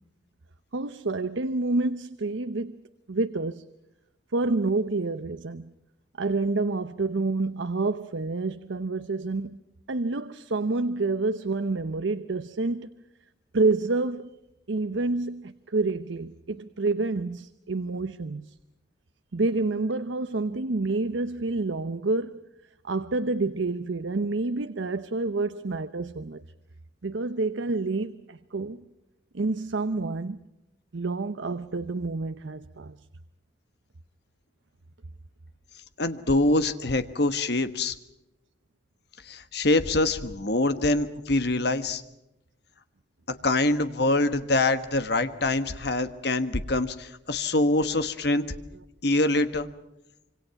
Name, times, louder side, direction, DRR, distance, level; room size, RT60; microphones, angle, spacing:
voice 1, 0.7-2.8 3.1-3.6 4.3-5.7 6.2-9.6 9.9-12.9 13.5-14.4 14.7-18.6 19.3-22.4 22.8-26.4 27.0-28.8 29.3-30.4 30.9-33.1 48.7-48.8, right 3 dB, 75° right, 0.7 m, -28 dB
voice 2, 36.0-37.9 39.3-42.0 43.4-48.4 49.0-49.7, left 2 dB, 60° left, 1.3 m, -24 dB
26.0 x 25.5 x 5.9 m
head